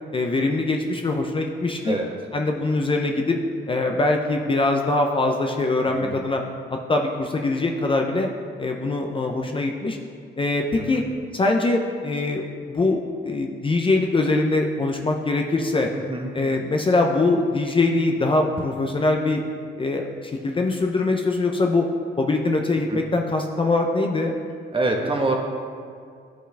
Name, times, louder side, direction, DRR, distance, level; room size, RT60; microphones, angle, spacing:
voice 1, 0.1-2.0 2.3-3.4 3.7-6.4 6.7-8.3 8.6-10.0 10.4-11.0 11.3-15.9 16.3-19.4 19.8-21.8 22.2-24.3, left 2 dB, 25° left, 2 dB, 0.6 m, -23 dB
voice 2, 15.9-16.3 22.9-23.0 24.7-25.4, right 2 dB, 25° right, 1 dB, 1.2 m, -25 dB
11.5 x 5.1 x 3.4 m, 2.3 s
cardioid pair, 90°, 20 cm